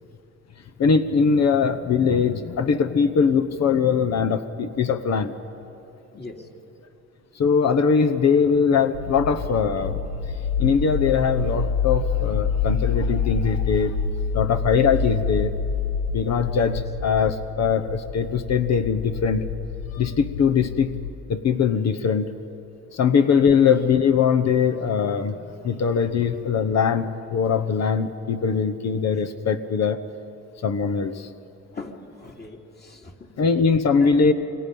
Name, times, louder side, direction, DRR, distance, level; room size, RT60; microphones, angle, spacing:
voice 1, 0.8-5.3 7.4-10.0 10.6-14.0 14.3-15.5 16.1-19.5 19.9-20.9 21.3-22.3 22.9-30.0 30.6-31.3 33.4-34.3, left 6 dB, 60° left, 8 dB, 1.1 m, -21 dB
voice 2, 6.1-6.5 31.7-33.3 34.0-34.3, left 3 dB, 35° left, 1 dB, 2.8 m, -41 dB
sound 1, 8.9-21.1, left 5 dB, 90° left, 1.0 m, -27 dB
28.0 x 23.0 x 5.4 m, 2.9 s
cardioid pair, 90°, 30 cm